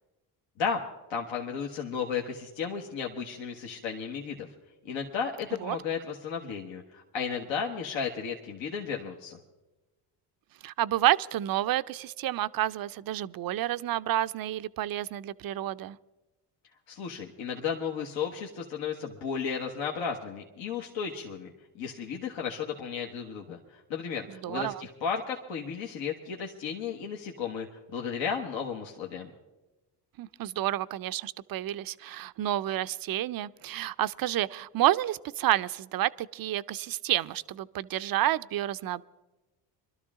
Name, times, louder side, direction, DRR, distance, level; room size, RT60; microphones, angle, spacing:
voice 1, 1.1-4.5 4.8-9.4 16.9-21.5 21.8-29.3, left 6 dB, 70° left, 1.4 m, -34 dB
voice 2, 10.6-16.0 24.3-24.8 30.2-39.0, right 13 dB, 50° right, 0.5 m, -29 dB
22.5 x 12.5 x 3.7 m
supercardioid pair, 65°, 46 cm